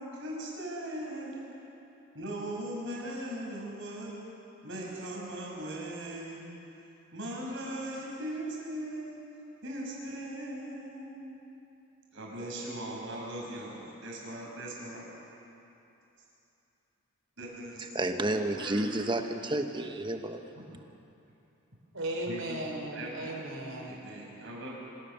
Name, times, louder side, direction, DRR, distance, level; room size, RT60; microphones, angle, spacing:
voice 1, 0.0-1.5 2.1-4.1 4.6-6.5 7.1-9.2 9.6-11.4 12.1-15.0 17.4-17.9 18.2-19.2 20.5-20.6 22.3-22.4 22.9-23.4 23.9-24.7, right 1 dB, 65° right, 5.8 m, -39 dB
voice 2, 17.8-20.5, right 1 dB, 25° right, 1.2 m, -31 dB
voice 3, 21.9-24.1, right 1 dB, 85° right, 4.3 m, -36 dB
25.5 x 16.0 x 6.9 m
head